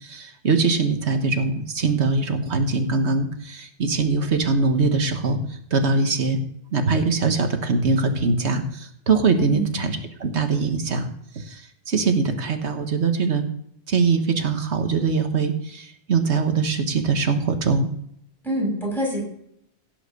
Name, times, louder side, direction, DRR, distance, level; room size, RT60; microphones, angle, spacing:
voice 1, 0.0-6.4 6.7-11.6 11.9-13.4 13.9-17.9, right 4 dB, 85° right, 6 dB, 1.7 m, -22 dB
voice 2, 9.4-9.9 18.4-19.2, right 1 dB, ahead, -3 dB, 6.4 m, -26 dB
17.0 x 5.8 x 6.8 m, 0.71 s
omnidirectional pair, 1.1 m